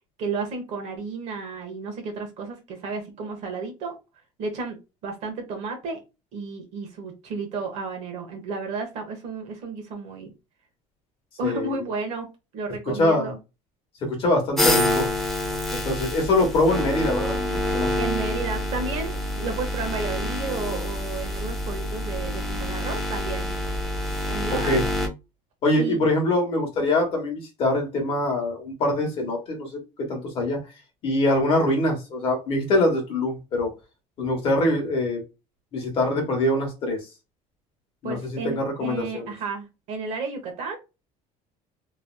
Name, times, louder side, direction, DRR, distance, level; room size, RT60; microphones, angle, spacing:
voice 1, 0.2-4.0 4.4-4.8 5.0-6.0 6.3-10.3 11.4-12.3 12.5-13.4 18.0-23.6 24.3-25.0 25.8-26.0 38.0-40.8, right 4 dB, 50° right, 1.1 m, -32 dB
voice 2, 11.4-11.8 12.9-13.3 14.0-15.1 15.8-17.9 24.6-24.8 25.6-30.6 31.0-33.7 34.2-35.2 35.7-37.0 38.0-39.3, left 1 dB, 40° left, 1.2 m, -24 dB
sound 1, 14.6-25.1, left 1 dB, ahead, 0.5 m, -27 dB
3.1 x 2.7 x 2.3 m
cardioid pair, 175°, 14 cm